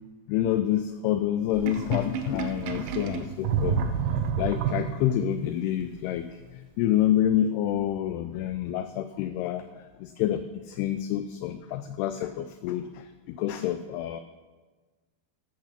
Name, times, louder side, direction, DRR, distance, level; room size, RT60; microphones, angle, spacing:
voice 1, 0.3-3.8 4.4-9.6 10.0-14.2, left 11 dB, 85° left, 9 dB, 2.3 m, -28 dB
Sink (filling or washing), 1.5-5.3, right 7 dB, 85° right, 2.1 m, -29 dB
14.0 x 6.3 x 5.8 m, 1.3 s
omnidirectional pair, 5.0 m